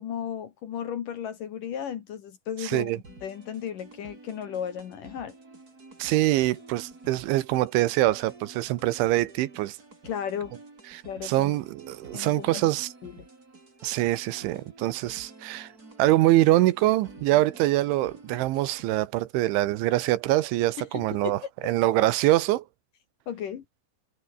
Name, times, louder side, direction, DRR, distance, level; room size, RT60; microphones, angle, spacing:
voice 1, 0.0-2.9 3.2-5.3 10.0-10.6 11.1-11.5 12.1-12.6 13.0-13.1 20.8-21.5 23.3-23.6, left 8 dB, 60° left, 2.7 m, -35 dB
voice 2, 2.6-3.0 6.0-9.8 10.9-12.9 13.8-15.7 16.0-22.7, right 16 dB, 85° right, 3.5 m, -24 dB
sound 1, 3.0-19.0, right 3 dB, 20° right, 4.3 m, -50 dB
omnidirectional pair, 5.4 m